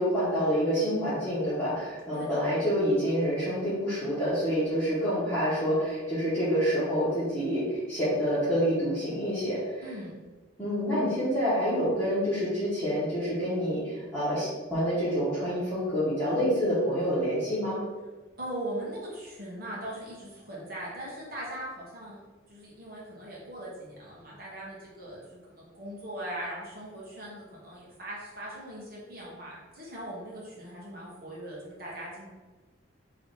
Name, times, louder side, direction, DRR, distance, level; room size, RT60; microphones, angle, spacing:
voice 1, 0.0-9.9 10.6-17.8, equal, 5° left, -15 dB, 1.4 m, -27 dB
voice 2, 2.1-2.5 9.8-10.2 18.4-22.2 22.5-32.3, right 1 dB, 50° right, -5 dB, 1.3 m, -40 dB
3.2 x 3.0 x 4.2 m, 1.3 s
head